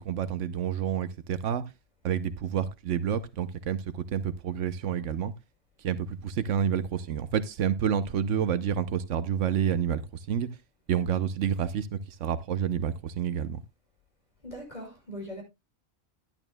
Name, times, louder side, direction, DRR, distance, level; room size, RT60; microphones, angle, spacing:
voice 1, 0.0-1.6 2.0-5.3 5.8-10.0 10.3-10.5 10.9-13.6, right 8 dB, 80° right, 13 dB, 1.1 m, -29 dB
voice 2, 14.4-15.4, equal, 35° left, 0 dB, 6.0 m, -40 dB
12.0 x 11.0 x 2.2 m, 0.23 s
omnidirectional pair, 1.2 m